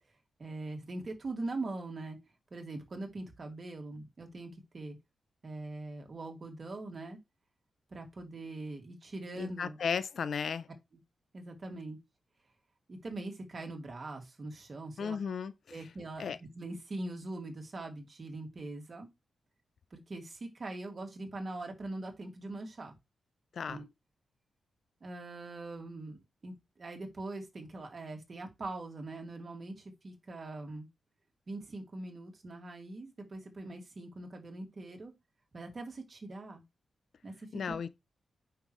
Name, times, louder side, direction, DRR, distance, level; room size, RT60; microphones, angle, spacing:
voice 1, 0.4-2.2 2.5-5.0 5.4-7.2 7.9-9.8 11.3-12.0 12.9-15.2 15.7-19.1 19.9-22.9 23.7-23.9 25.0-30.9 31.5-35.1 35.5-36.6 37.2-37.8, right 2 dB, 40° right, 2.3 m, -42 dB
voice 2, 9.4-10.7 15.0-15.5 16.2-16.4 23.5-23.8 37.5-37.9, left 6 dB, 65° left, 0.5 m, -34 dB
9.0 x 5.7 x 3.2 m
wide cardioid pair, 125°, 0 cm